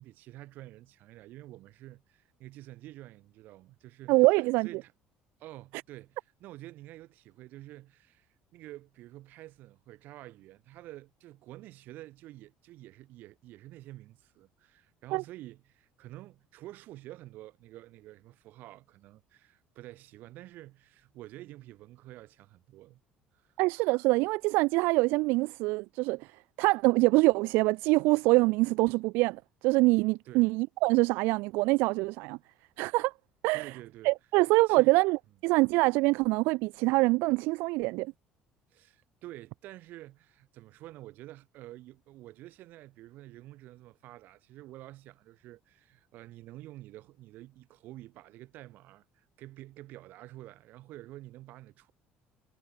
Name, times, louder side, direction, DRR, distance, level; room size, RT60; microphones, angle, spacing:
voice 1, 0.0-4.3 4.6-4.9 5.4-23.0 23.3-23.5 30.3-30.5 33.5-34.1 34.7-35.0 38.7-51.9, right 16 dB, 60° right, 5.1 m, -49 dB
voice 2, 4.1-4.7 15.1-15.2 23.6-26.3 26.6-32.4 32.8-33.1 33.4-33.7 34.0-38.1, right 24 dB, 80° right, 0.5 m, -25 dB
cardioid pair, 155°, 3 cm